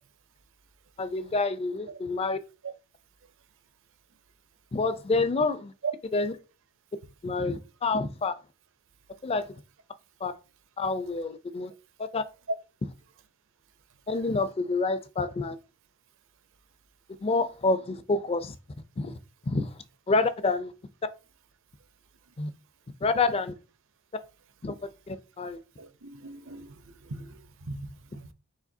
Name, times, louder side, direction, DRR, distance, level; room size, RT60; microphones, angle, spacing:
voice 1, 1.0-2.4 4.7-5.7 6.1-6.3 7.2-8.3 9.2-9.5 10.2-10.3 10.8-11.7 12.0-12.2 14.1-15.6 17.2-18.6 19.0-19.1 19.5-19.7 20.1-20.7 22.4-22.5 23.0-23.5 24.6-24.7 25.1-25.6, left 3 dB, 25° left, 0.4 m, -27 dB
voice 2, 25.8-28.3, right 4 dB, 60° right, 0.6 m, -39 dB
4.9 x 3.8 x 2.7 m
head